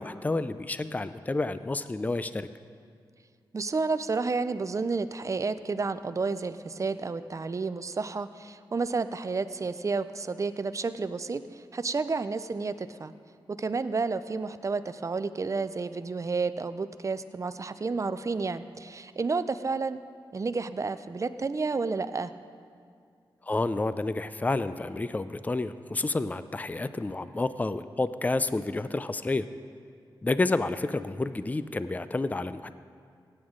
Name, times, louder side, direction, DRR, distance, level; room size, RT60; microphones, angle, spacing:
voice 1, 0.0-2.5 23.5-29.5 30.2-32.7, left 2 dB, 20° left, 13 dB, 0.4 m, -30 dB
voice 2, 3.5-13.1 13.5-20.0 20.3-22.3, right 4 dB, 40° right, 12 dB, 0.5 m, -31 dB
17.0 x 8.8 x 3.8 m, 2.3 s
cardioid pair, 60°, 9 cm